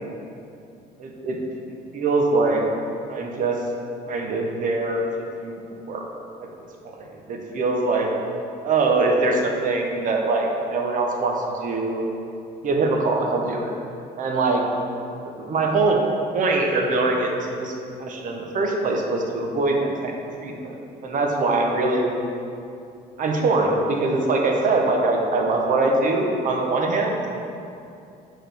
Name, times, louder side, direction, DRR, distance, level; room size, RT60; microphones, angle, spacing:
voice 1, 1.9-2.6 3.1-3.6 4.1-5.0 5.4-5.6 5.9-6.1 6.4-6.5 6.9-8.1 8.6-11.3 11.6-12.0 12.6-13.7 14.2-14.6 15.2-16.0 16.3-17.7 18.0-20.1 20.4-20.8 21.0-22.1 23.2-27.3, right 3 dB, 50° right, 1 dB, 0.8 m, -22 dB
5.9 x 4.7 x 3.4 m, 2.6 s
cardioid pair, 110°, 17 cm